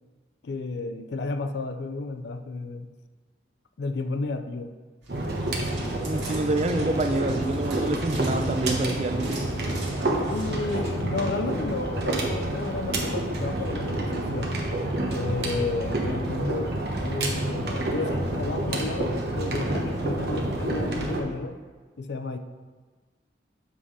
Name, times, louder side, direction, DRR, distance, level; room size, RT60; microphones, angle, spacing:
voice 1, 0.4-2.9 3.8-4.7 10.2-14.6 15.1-21.6 22.0-22.4, left 3 dB, 65° left, 8 dB, 0.4 m, -32 dB
sound 1, 5.0-10.8, right 2 dB, 80° right, 1.8 m, -43 dB
sound 2, 5.1-21.2, right 1 dB, 60° right, 1.0 m, -28 dB
voice 2, 6.0-9.4, right 2 dB, 35° right, 7 dB, 0.4 m, -27 dB
7.5 x 3.6 x 4.8 m, 1.4 s
head